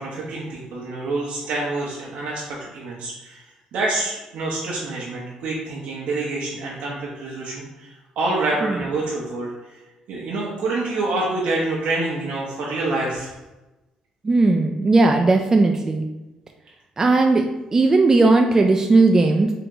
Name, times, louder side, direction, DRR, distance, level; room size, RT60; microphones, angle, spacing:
voice 1, 0.0-9.8 10.1-13.3, right 2 dB, 75° right, -4 dB, 0.8 m, -27 dB
voice 2, 14.2-16.1 17.0-19.5, right 3 dB, 25° right, 3 dB, 0.3 m, -17 dB
3.8 x 2.8 x 3.7 m, 1.0 s
cardioid pair, 100°, 2 cm